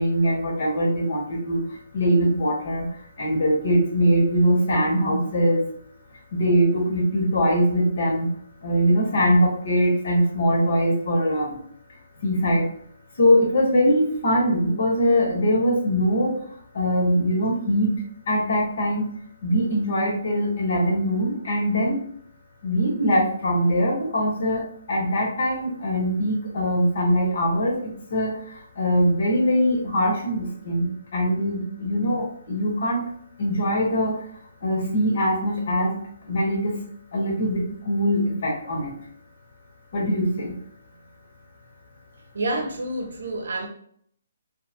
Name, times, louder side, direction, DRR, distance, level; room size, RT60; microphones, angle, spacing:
voice 1, 0.0-1.6 1.9-2.9 3.2-5.6 6.3-8.3 8.6-11.6 12.2-12.7 13.2-16.3 16.7-17.9 18.3-19.0 19.4-22.0 22.6-24.6 24.9-27.8 28.1-28.3 28.8-33.0 33.4-34.1 34.6-35.9 36.3-36.7 37.1-38.9 39.9-40.5, equal, 55° left, 1.1 m, -22 dB
voice 2, 42.3-43.7, right 2 dB, 65° right, 0.8 m, -28 dB
3.0 x 2.7 x 2.5 m
figure-of-eight pair, 135°, 0 cm